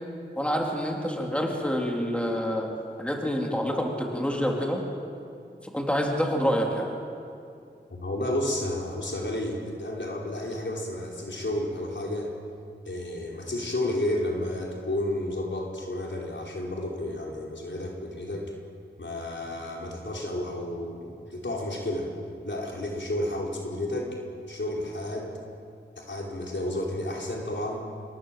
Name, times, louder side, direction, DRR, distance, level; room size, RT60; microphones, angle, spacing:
voice 1, 0.4-2.7 3.0-4.8 5.6-6.9, equal, 5° left, 0 dB, 3.8 m, -27 dB
voice 2, 7.9-12.3 12.8-18.5 19.0-22.1 22.4-24.2 24.5-25.3 26.0-27.9, left 1 dB, 70° left, -1 dB, 4.8 m, -31 dB
26.5 x 22.0 x 7.8 m, 2.5 s
wide cardioid pair, 65°, 19 cm